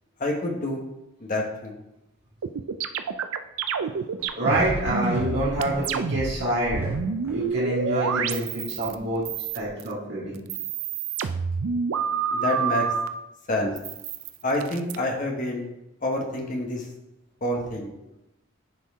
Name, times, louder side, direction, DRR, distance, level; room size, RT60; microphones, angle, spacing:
voice 1, 0.2-0.8 1.2-1.7 12.3-12.9 13.5-13.7 14.4-15.6 16.0-16.8 17.4-17.9, left 1 dB, 40° left, 1 dB, 1.3 m, -27 dB
sound 1, 2.4-9.0 9.3-9.9 10.4-13.1 13.8-15.0, right 6 dB, 80° right, 0.4 m, -28 dB
sound 2, 4.2-7.6 8.8-9.7, right 1 dB, 10° right, 1.0 m, -37 dB
voice 2, 4.4-6.9 7.2-9.2 9.5-10.4, right 1 dB, 55° right, -7 dB, 2.0 m, -26 dB
9.6 x 4.4 x 3.6 m, 0.91 s
head